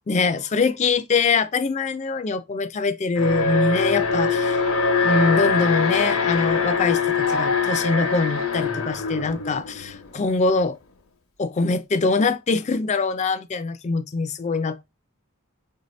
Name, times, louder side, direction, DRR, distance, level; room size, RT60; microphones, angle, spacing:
voice 1, 0.1-4.6 5.0-10.8 11.4-14.8, left 4 dB, 35° left, 0.4 m, -23 dB
Alarm, 3.2-10.3, left 4 dB, 85° left, 0.8 m, -23 dB
4.6 x 2.8 x 3.1 m
head